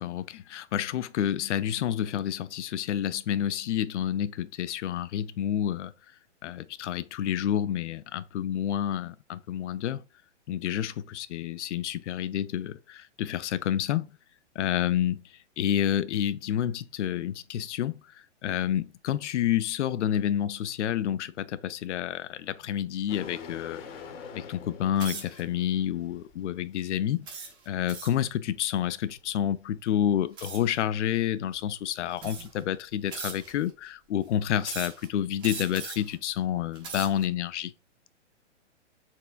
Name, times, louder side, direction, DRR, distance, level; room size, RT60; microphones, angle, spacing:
voice 1, 0.0-5.9 6.4-10.0 10.5-14.1 14.6-23.8 24.3-27.3 27.7-37.7, left 10 dB, 75° left, 0.5 m, -29 dB
sound 1, 23.1-26.6 27.5-27.6 27.8-28.0 29.0-29.8 32.4-32.5, left 6 dB, 50° left, 0.9 m, -45 dB
sound 2, 25.0-25.4 26.1-26.3 27.3-28.3 30.4-30.8 31.6-31.7 32.2-32.6 33.1-33.7 34.6-35.1 35.4-36.1 36.6-37.3, right 5 dB, 15° right, 0.6 m, -39 dB
4.4 x 3.4 x 2.4 m
hypercardioid pair, 145°, 36 cm